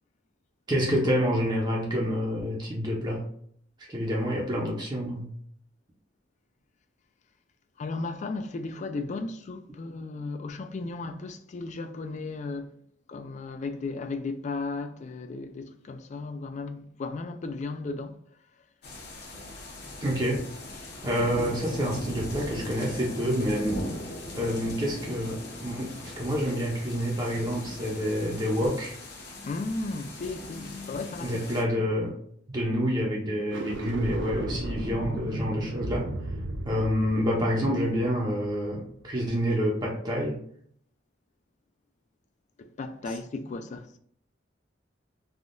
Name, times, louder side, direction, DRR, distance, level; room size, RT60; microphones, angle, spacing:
voice 1, 0.7-3.2 3.9-5.3 20.0-20.5 21.0-23.8 24.3-28.9 31.2-32.1 32.5-36.1 36.6-40.4 43.0-43.1, equal, 25° right, 0.6 m, -28 dB
voice 2, 7.8-12.7 13.1-18.2 29.3-31.5 42.6-44.0, left 3 dB, 40° left, 0.3 m, -35 dB
sound 1, 18.8-31.6, left 1 dB, 60° left, 0.7 m, -39 dB
sound 2, 33.4-38.7, right 2 dB, 70° right, 0.4 m, -35 dB
3.5 x 2.2 x 2.5 m
head